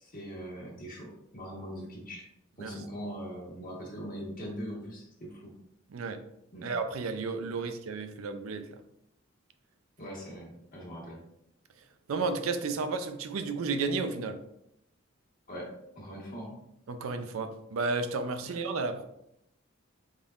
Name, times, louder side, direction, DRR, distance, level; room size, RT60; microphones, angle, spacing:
voice 1, 0.0-2.3 2.6-5.5 6.5-6.7 7.6-7.7 10.0-11.2 15.5-16.6 18.4-18.6, equal, 45° left, -2 dB, 1.1 m, -41 dB
voice 2, 6.6-8.7 12.1-14.4 16.9-19.0, right 4 dB, 90° right, 8 dB, 0.4 m, -32 dB
3.9 x 3.6 x 2.4 m, 0.78 s
head